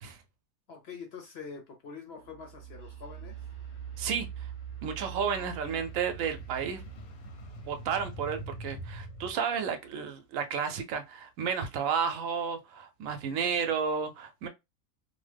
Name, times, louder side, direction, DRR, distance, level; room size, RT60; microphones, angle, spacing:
voice 1, 0.7-3.4 5.4-5.8 13.6-13.7, left 5 dB, 60° left, 0.7 m, -45 dB
sound 1, 2.2-9.9, right 10 dB, 50° right, 0.6 m, -45 dB
sound 2, 3.3-9.3, equal, 90° left, 1.2 m, -46 dB
voice 2, 4.0-4.5 4.8-6.8 7.6-14.5, right 6 dB, 70° right, 1.0 m, -32 dB
2.8 x 2.1 x 3.4 m
omnidirectional pair, 1.5 m